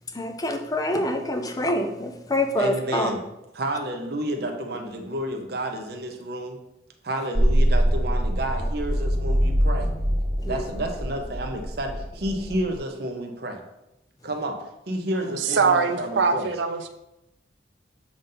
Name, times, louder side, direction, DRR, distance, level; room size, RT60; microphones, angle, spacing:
voice 1, 0.1-3.1 10.4-10.6, left 1 dB, 20° left, 5 dB, 0.5 m, -26 dB
voice 2, 2.6-3.2 3.5-6.6 7.0-9.9 10.4-13.6 14.2-14.6 14.9-16.5, right 1 dB, 55° right, 4 dB, 0.8 m, -30 dB
sound 1, 7.4-12.8, equal, 25° right, 0.6 m, -24 dB
voice 3, 15.3-16.9, right 5 dB, 80° right, 7 dB, 0.6 m, -23 dB
7.2 x 2.6 x 5.6 m, 0.89 s
head